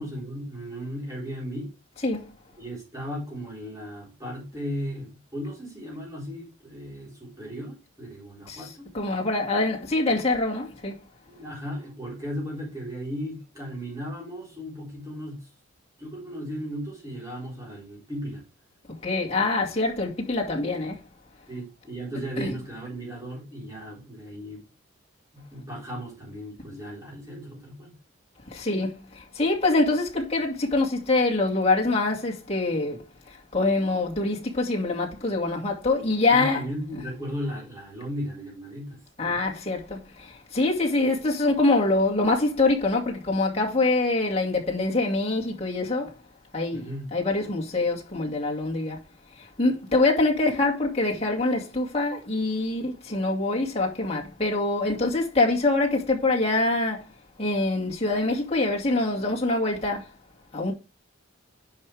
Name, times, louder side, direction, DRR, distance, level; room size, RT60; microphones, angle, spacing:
voice 1, 0.0-1.7 2.6-8.9 11.3-15.5 16.0-18.4 21.5-24.6 25.3-27.9 36.3-39.4 46.7-47.1, equal, 15° right, 4.1 m, -36 dB
voice 2, 8.5-11.0 18.9-21.0 22.4-22.5 28.5-36.6 39.2-46.1 46.5-49.0 49.4-57.0 57.4-60.1 60.5-60.7, left 2 dB, 30° left, 2.2 m, -25 dB
10.5 x 5.0 x 3.4 m
head